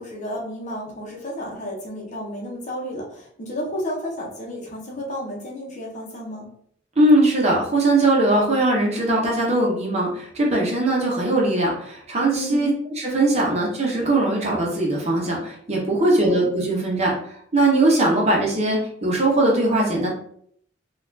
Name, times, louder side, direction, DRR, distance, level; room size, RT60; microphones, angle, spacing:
voice 1, 0.0-6.5 12.3-12.7 16.1-16.5, equal, 40° left, -2 dB, 0.8 m, -32 dB
voice 2, 7.0-17.1 17.5-20.1, right 2 dB, 35° right, -2 dB, 0.8 m, -20 dB
4.0 x 2.4 x 2.7 m, 0.65 s
head